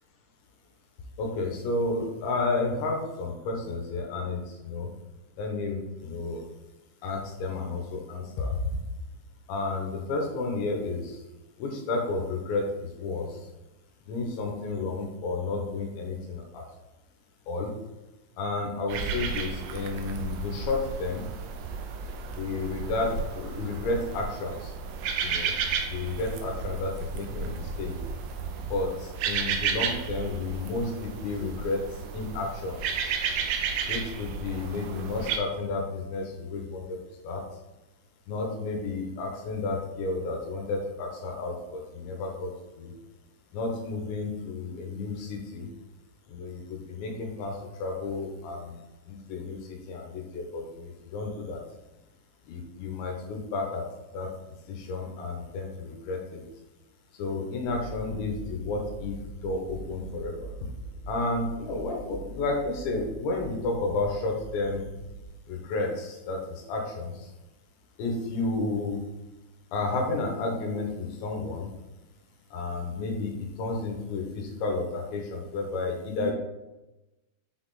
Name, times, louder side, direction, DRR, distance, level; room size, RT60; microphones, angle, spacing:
voice 1, 1.2-4.9 5.4-6.4 7.0-8.7 9.5-11.2 11.6-13.5 14.0-16.6 17.5-17.8 18.4-21.3 22.3-24.7 25.2-25.6 25.9-28.0 28.7-33.0 33.9-37.0 37.2-37.5 38.3-42.9 43.5-45.7 46.3-48.8 49.1-51.6 52.4-54.4 54.7-56.4 57.1-60.7 61.1-64.9 65.5-67.3 68.0-69.0 69.7-71.7 72.5-76.3, left 3 dB, 75° left, 1 dB, 3.3 m, -32 dB
sound 1, 18.9-35.4, right 6 dB, 85° right, 2.6 m, -33 dB
sound 2, 57.6-65.3, right 3 dB, 65° right, 3.5 m, -43 dB
8.2 x 4.2 x 4.0 m, 1.0 s
omnidirectional pair, 5.3 m